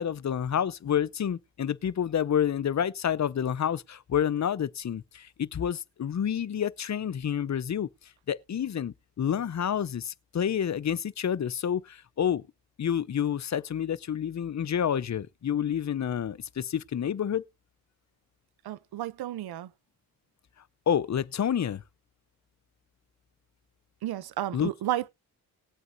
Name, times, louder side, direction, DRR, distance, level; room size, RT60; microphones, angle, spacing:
voice 1, 0.0-7.9 8.3-12.4 12.8-17.4 20.9-21.8 24.5-24.7, left 9 dB, 50° left, 0.7 m, -29 dB
voice 2, 18.6-19.7 24.0-25.1, right 13 dB, 80° right, 0.7 m, -32 dB
19.0 x 8.0 x 2.7 m
supercardioid pair, 45°, 37 cm